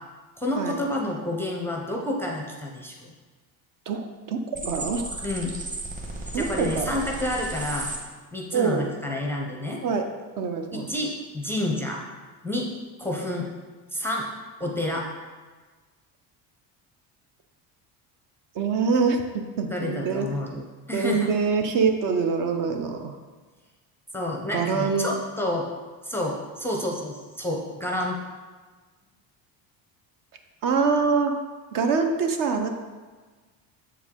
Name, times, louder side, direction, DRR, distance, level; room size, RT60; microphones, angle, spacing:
voice 1, 0.4-3.1 5.2-5.5 6.3-7.9 8.3-9.8 10.7-12.0 12.4-12.7 13.0-13.5 13.9-14.3 14.6-15.1 19.7-21.3 24.1-25.7 26.0-28.2, left 1 dB, 5° left, -1 dB, 0.5 m, -29 dB
voice 2, 3.9-5.1 6.3-7.0 8.5-8.9 9.8-10.1 10.4-10.9 18.5-19.2 19.6-20.3 20.9-23.1 24.5-25.1 30.6-31.3 31.7-32.7, right 5 dB, 55° right, 5 dB, 0.7 m, -24 dB
sound 1, 4.5-8.0, right 2 dB, 20° right, 1.1 m, -34 dB
7.2 x 4.7 x 3.6 m, 1.4 s
cardioid pair, 140°, 40 cm